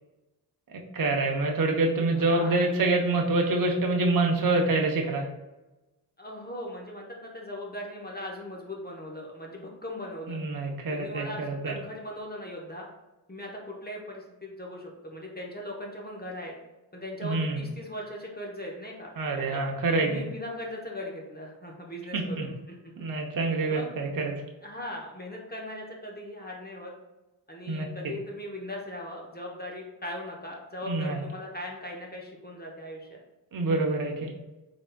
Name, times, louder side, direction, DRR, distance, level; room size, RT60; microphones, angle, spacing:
voice 1, 0.7-5.3 10.3-11.7 17.2-17.6 19.2-20.2 22.1-22.5 23.0-24.4 27.7-27.9 30.9-31.2 33.5-34.3, right 2 dB, 45° right, 1 dB, 0.8 m, -26 dB
voice 2, 2.2-2.6 6.2-10.4 10.9-12.9 13.3-16.6 16.9-19.1 19.4-19.7 20.0-23.1 23.7-23.9 24.6-26.9 27.5-33.2, left 1 dB, 20° left, -1 dB, 0.8 m, -39 dB
4.0 x 3.5 x 2.2 m, 1.1 s
cardioid pair, 55°, 47 cm